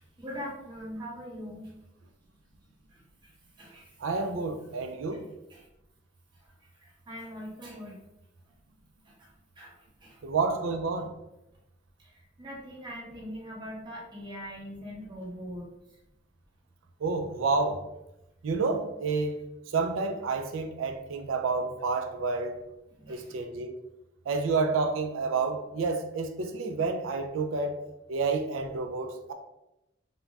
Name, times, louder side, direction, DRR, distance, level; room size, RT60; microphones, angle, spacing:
voice 1, 0.0-1.7 2.9-3.0 3.6-3.9 5.5-5.7 6.8-8.0 9.2-9.3 9.6-10.2 12.1-15.7 22.9-23.2, equal, 25° right, -5 dB, 0.8 m, -42 dB
voice 2, 4.0-5.2 10.2-11.1 17.0-17.8 18.4-19.4 19.7-22.6 23.1-23.7 24.3-27.7 28.1-29.3, right 4 dB, 85° right, 6 dB, 0.4 m, -29 dB
2.4 x 2.1 x 3.2 m, 0.90 s
head